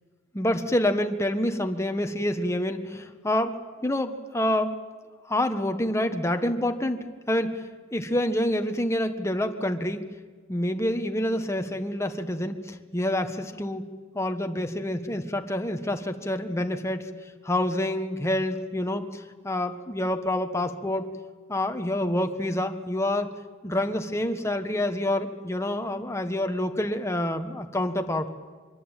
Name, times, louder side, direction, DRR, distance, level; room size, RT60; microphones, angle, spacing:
voice 1, 0.3-3.5 3.8-4.7 5.3-7.6 7.9-10.0 10.5-13.8 14.1-17.1 17.4-21.1 21.5-23.3 23.6-28.3, left 1 dB, 15° left, 6 dB, 1.5 m, -27 dB
24.5 x 23.0 x 9.1 m, 1.4 s
head